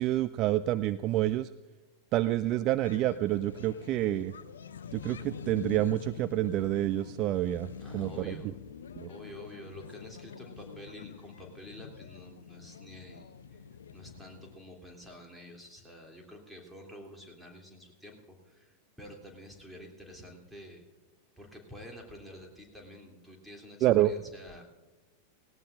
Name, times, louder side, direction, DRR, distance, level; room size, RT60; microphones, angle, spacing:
voice 1, 0.0-1.5 2.1-4.3 4.9-8.4 9.0-9.1 23.8-24.1, right 14 dB, 40° right, 14 dB, 0.3 m, -28 dB
sound 1, 2.8-14.6, left 7 dB, 65° left, 0.5 m, -46 dB
voice 2, 7.8-8.5 9.1-13.6 13.9-18.2 18.4-20.8 21.4-24.6, equal, 5° right, 0 dB, 3.0 m, -49 dB
18.0 x 18.0 x 2.6 m, 1.1 s
figure-of-eight pair, 90°, 0 cm